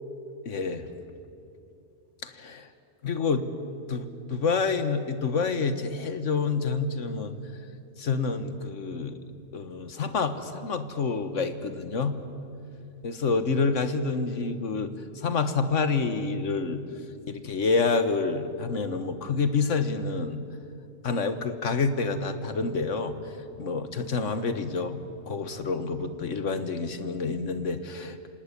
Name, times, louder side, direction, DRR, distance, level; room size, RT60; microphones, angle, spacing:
voice 1, 0.5-0.9 2.4-2.7 3.0-3.5 3.9-7.3 8.0-9.2 9.5-12.1 13.0-14.9 15.2-16.8 17.3-20.4 21.0-23.2 23.6-25.0 25.3-28.3, left 4 dB, 85° left, 10 dB, 1.7 m, -28 dB
26.0 x 18.0 x 10.0 m, 2.6 s
omnidirectional pair, 1.2 m